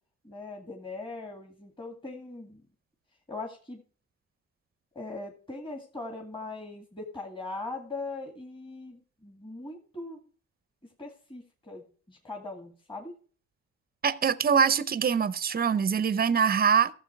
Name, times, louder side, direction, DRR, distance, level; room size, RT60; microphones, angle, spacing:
voice 1, 0.2-2.6 3.3-3.8 4.9-10.3 11.0-13.1, left 3 dB, 15° left, 2.1 m, -40 dB
voice 2, 14.0-16.9, right 7 dB, 30° right, 0.7 m, -24 dB
13.0 x 7.2 x 4.7 m
cardioid pair, 90°, 30 cm